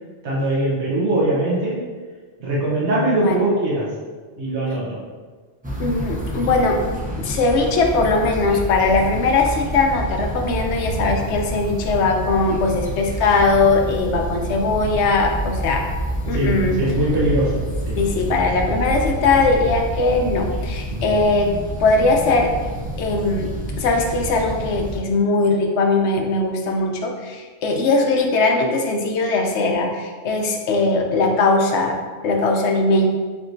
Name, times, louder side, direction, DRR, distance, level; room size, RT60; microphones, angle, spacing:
voice 1, 0.2-1.8 2.4-3.9 4.4-5.0 16.3-18.0 20.9-21.1, right 1 dB, 75° right, -7 dB, 1.3 m, -21 dB
sound 1, 5.6-25.0, right 1 dB, 10° right, 0.4 m, -28 dB
voice 2, 5.8-6.8 7.2-15.8 16.3-16.7 18.0-21.5 21.8-22.5 23.0-23.5 23.8-31.9 32.2-33.1, left 3 dB, 80° left, 2 dB, 0.9 m, -20 dB
4.5 x 3.7 x 2.6 m, 1.4 s
omnidirectional pair, 1.2 m